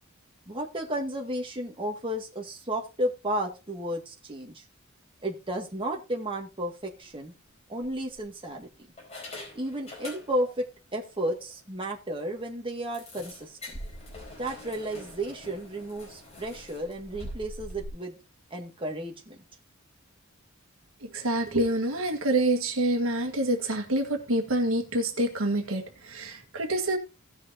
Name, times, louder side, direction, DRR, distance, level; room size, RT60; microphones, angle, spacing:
voice 1, 0.5-4.6 5.2-7.3 7.7-8.7 9.5-13.8 14.4-18.2 18.5-19.4, right 1 dB, 25° right, 2.0 m, -33 dB
sound 1, 6.9-7.1 7.8-8.5 9.0-10.6 10.9-11.1 11.5-11.6 11.9-12.0 12.9-17.9, left 1 dB, 30° left, 4.4 m, -44 dB
voice 2, 21.0-27.0, right 1 dB, 75° right, 1.7 m, -27 dB
17.0 x 6.5 x 2.7 m
head